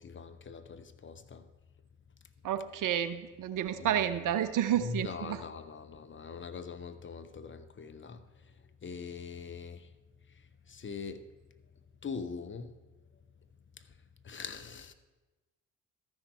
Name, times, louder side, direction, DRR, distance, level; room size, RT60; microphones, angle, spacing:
voice 1, 0.0-1.5 2.7-2.9 3.7-4.0 4.8-8.2 8.8-9.9 10.7-11.3 12.0-12.7 14.2-14.9, left 5 dB, 30° left, 0.8 m, -42 dB
voice 2, 2.4-5.4, right 10 dB, 50° right, 0.8 m, -30 dB
13.5 x 6.2 x 4.6 m
hypercardioid pair, 50°, 40 cm